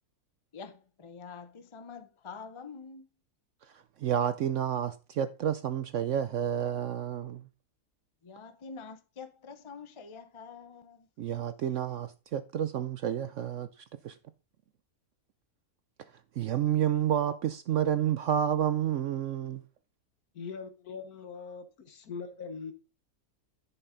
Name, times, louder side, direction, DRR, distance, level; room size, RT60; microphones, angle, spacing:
voice 1, 0.5-3.1 8.2-11.1, left 5 dB, 40° left, 0.4 m, -46 dB
voice 2, 4.0-7.4 11.2-13.7 14.0-14.2 16.4-19.6, right 10 dB, 65° right, 0.8 m, -30 dB
voice 3, 20.3-22.7, left 5 dB, 65° left, 1.7 m, -41 dB
10.5 x 5.9 x 3.9 m
omnidirectional pair, 1.7 m